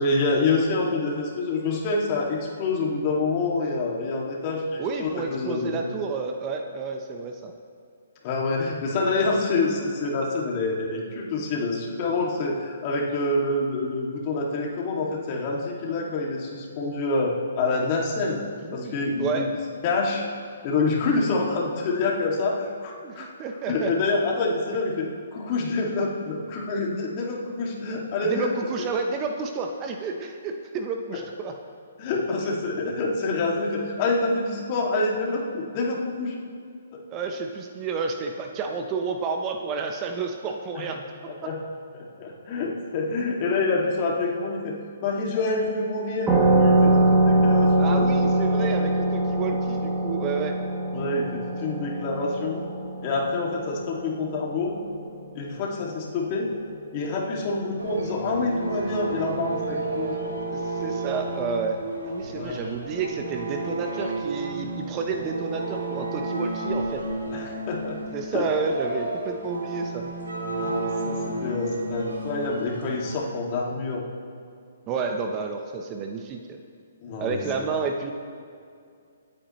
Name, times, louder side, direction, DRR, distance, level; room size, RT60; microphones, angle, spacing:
voice 1, 0.0-5.7 8.2-18.4 18.7-19.5 19.8-20.2 20.6-23.3 23.7-28.5 32.0-36.4 36.9-37.0 40.8-40.9 41.2-41.6 41.9-44.7 45.0-48.2 48.6-48.7 50.9-52.6 53.0-54.7 55.3-56.5 56.9-60.2 62.3-62.7 67.3-68.0 68.3-68.5 70.6-70.8 71.1-74.0 77.0-77.7, left 3 dB, 40° left, -2 dB, 2.5 m, -27 dB
voice 2, 4.8-7.6 18.6-19.5 23.0-23.9 28.2-31.5 33.8-33.9 37.1-41.0 46.8-47.1 47.8-50.6 60.5-61.8 62.0-67.0 68.1-70.1 74.9-76.6 77.2-78.1, right 4 dB, 25° right, 4 dB, 1.0 m, -30 dB
sound 1, 46.3-55.5, right 1 dB, 10° right, 2.2 m, -23 dB
sound 2, 57.8-73.1, right 2 dB, 85° right, 2.9 m, -32 dB
26.0 x 8.9 x 3.3 m, 2.3 s
figure-of-eight pair, 130°, 0 cm